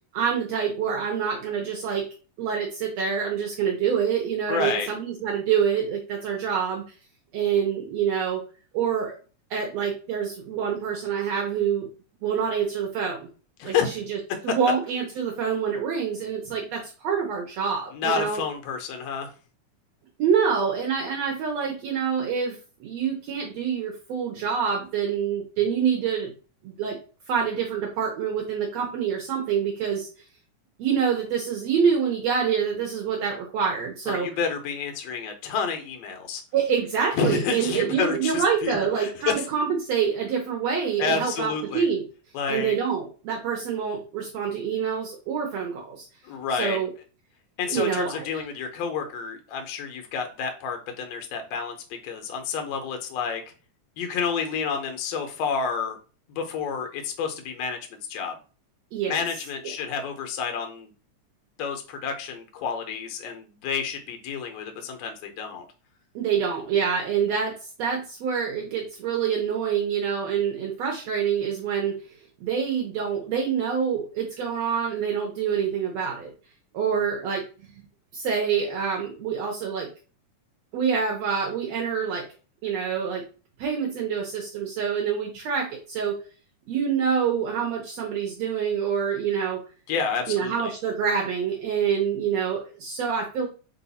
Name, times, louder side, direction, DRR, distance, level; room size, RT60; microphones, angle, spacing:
voice 1, 0.1-2.0 2.4-6.8 7.3-8.4 8.7-9.2 9.5-11.9 12.2-13.3 13.6-14.2 14.4-18.4 20.2-22.6 22.8-26.3 26.6-27.0 27.3-30.1 30.8-34.3 36.5-42.0 42.5-46.1 46.6-46.9 47.7-48.3 58.9-59.2 66.2-67.5 67.8-72.0 72.4-76.3 76.7-77.4 78.1-79.9 80.7-82.2 82.6-83.2 83.6-86.2 86.7-89.6 90.3-93.5, right 7 dB, 70° right, 0 dB, 1.9 m, -26 dB
voice 2, 4.5-4.9 13.6-14.0 17.9-19.3 34.1-36.4 37.1-39.3 41.0-41.8 42.3-42.8 46.2-46.8 47.6-51.8 52.0-53.4 54.0-56.0 56.4-58.3 59.1-60.9 61.6-65.7 89.9-90.7, left 6 dB, 70° left, 5 dB, 1.8 m, -29 dB
4.7 x 2.5 x 4.0 m, 0.36 s
omnidirectional pair, 3.4 m